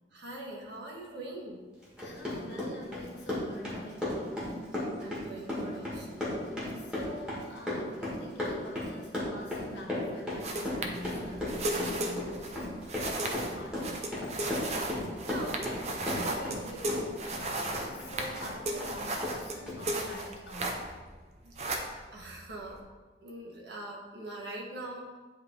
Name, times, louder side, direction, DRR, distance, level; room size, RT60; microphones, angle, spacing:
voice 1, 0.1-1.6 5.0-6.2 15.2-15.8 16.1-16.9 21.8-22.8 23.2-25.0, right 1 dB, 70° right, -2 dB, 1.3 m, -42 dB
Run, 1.8-16.6 16.9-18.5 18.8-18.9 19.2-19.4 19.7-19.8, left 1 dB, 5° right, 1.6 m, -35 dB
voice 2, 2.0-4.6 6.7-14.0 17.3-21.0, left 1 dB, 75° left, -1 dB, 1.3 m, -46 dB
sound 1, 10.4-21.1 21.4-22.8, right 1 dB, 35° right, 0.6 m, -36 dB
9.5 x 3.2 x 3.6 m, 1.3 s
head